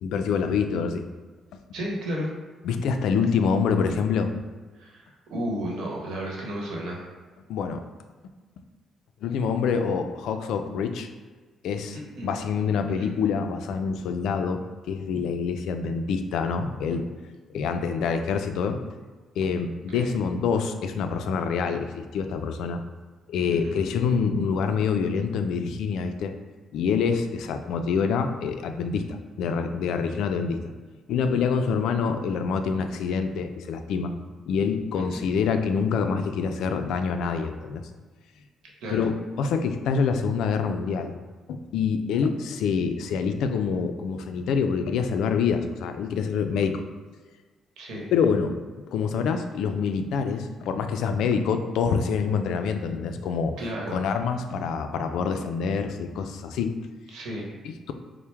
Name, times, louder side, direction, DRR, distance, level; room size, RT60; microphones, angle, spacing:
voice 1, 0.0-1.0 2.6-4.3 7.5-7.8 9.2-11.1 11.6-12.0 12.2-14.6 14.9-17.0 17.5-18.8 19.4-22.8 23.3-26.3 26.7-30.7 31.1-34.1 34.5-37.8 38.9-41.1 41.5-46.8 48.1-48.6 48.9-53.5 53.9-56.7 57.6-57.9, left 6 dB, 80° left, 7 dB, 0.3 m, -26 dB
voice 2, 1.7-2.3 4.8-7.1 12.1-12.3 13.0-13.1 19.9-20.1 23.5-23.8 34.9-35.2 38.8-39.0 47.8-48.1 53.6-54.0 57.1-57.5, equal, 80° right, -2 dB, 1.0 m, -33 dB
4.4 x 2.0 x 3.3 m, 1.4 s
cardioid pair, 90°, 0 cm